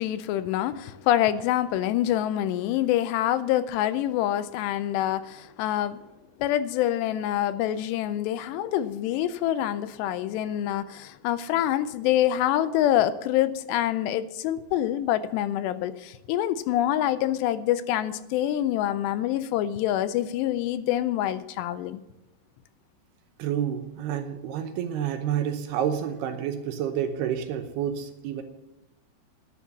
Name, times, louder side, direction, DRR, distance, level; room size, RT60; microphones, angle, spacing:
voice 1, 0.0-6.0 6.4-22.0, left 12 dB, 85° left, 2.6 m, -26 dB
voice 2, 23.4-28.4, right 9 dB, 75° right, 2.7 m, -29 dB
11.5 x 8.5 x 7.2 m
omnidirectional pair, 5.1 m